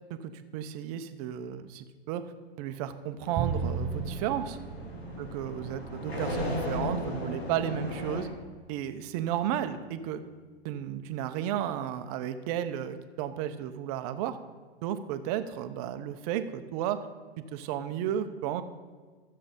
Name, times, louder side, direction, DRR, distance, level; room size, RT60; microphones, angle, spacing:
voice 1, 0.1-2.3 2.6-4.6 5.2-8.3 8.7-10.2 10.6-14.4 14.8-17.0 17.4-18.6, right 10 dB, 40° right, 10 dB, 0.8 m, -33 dB
sound 1, 3.2-8.2, left 1 dB, 85° left, 3.3 m, -36 dB
Bowed string instrument, 3.4-9.5, right 5 dB, 15° right, 0.5 m, -38 dB
12.5 x 7.6 x 5.2 m, 1.5 s
hypercardioid pair, 120°, 31 cm